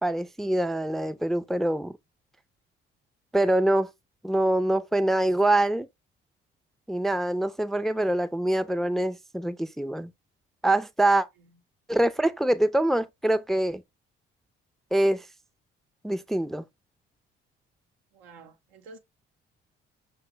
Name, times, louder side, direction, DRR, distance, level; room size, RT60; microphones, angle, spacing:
voice 1, 0.0-2.0 3.3-3.9 4.2-5.9 6.9-10.1 10.6-11.3 11.9-13.8 14.9-15.2 16.0-16.6, right 1 dB, ahead, 0.4 m, -24 dB
voice 2, 18.1-19.0, right 3 dB, 80° right, 0.7 m, -49 dB
5.9 x 2.2 x 3.1 m
hypercardioid pair, 45°, 29 cm